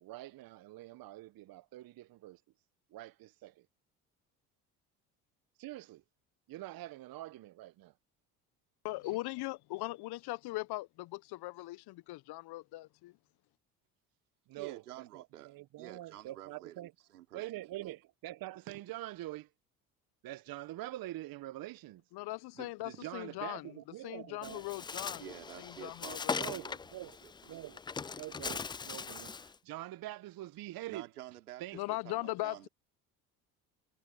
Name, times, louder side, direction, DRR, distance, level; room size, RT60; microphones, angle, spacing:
voice 1, 0.0-2.4 2.9-3.7 5.6-6.0 6.5-7.9 14.5-16.9 17.3-19.5 20.2-22.0 22.6-24.6 26.4-27.2 27.5-27.8 28.2-31.1 31.6-31.8, right 16 dB, 50° right, 1.2 m, -45 dB
voice 2, 8.8-13.1 22.1-23.7 24.0-26.3 31.7-32.7, left 19 dB, 55° left, 1.2 m, -40 dB
voice 3, 14.6-16.8 17.1-17.6 25.1-26.8 27.2-27.3 30.9-32.7, right 13 dB, 80° right, 3.6 m, -50 dB
Bird, 24.4-29.5, left 5 dB, 10° left, 0.3 m, -40 dB
hypercardioid pair, 60°, 45 cm